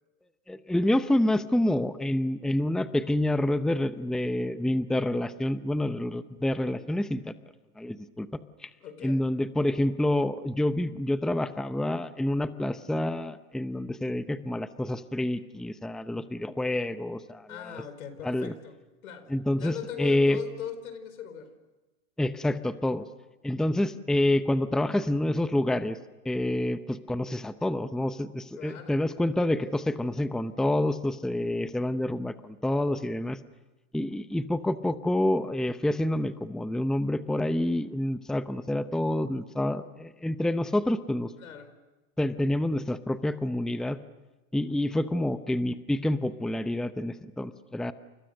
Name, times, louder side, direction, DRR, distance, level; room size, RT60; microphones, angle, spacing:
voice 1, 0.5-7.3 7.8-8.3 8.6-8.7 9.0-17.5 18.2-18.5 19.3-20.4 22.2-23.0 23.4-26.0 26.2-33.4 33.9-41.3 42.2-44.0 44.5-47.9, left 1 dB, ahead, 12 dB, 0.8 m, -28 dB
voice 2, 8.8-9.2 17.5-18.8 19.0-21.5 28.6-29.0 41.4-41.8, left 8 dB, 85° left, 11 dB, 4.7 m, -40 dB
29.5 x 28.0 x 6.5 m, 1.1 s
hypercardioid pair, 115°, 41 cm